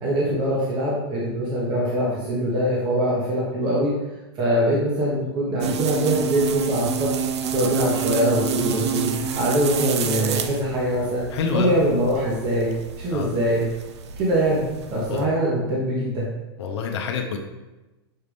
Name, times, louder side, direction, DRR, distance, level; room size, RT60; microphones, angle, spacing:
voice 1, 0.0-3.9 4.4-7.2 7.5-11.2 11.5-12.7 13.0-13.7 14.2-14.6 14.9-16.3, right 1 dB, 30° right, -5 dB, 1.0 m, -23 dB
sound 1, 5.6-15.3, right 7 dB, 80° right, 0.5 m, -29 dB
voice 2, 11.3-11.8 13.1-13.3 15.1-15.3 16.6-17.4, left 6 dB, 75° left, 3 dB, 0.6 m, -27 dB
6.4 x 2.5 x 3.4 m, 1.1 s
hypercardioid pair, 130°, 14 cm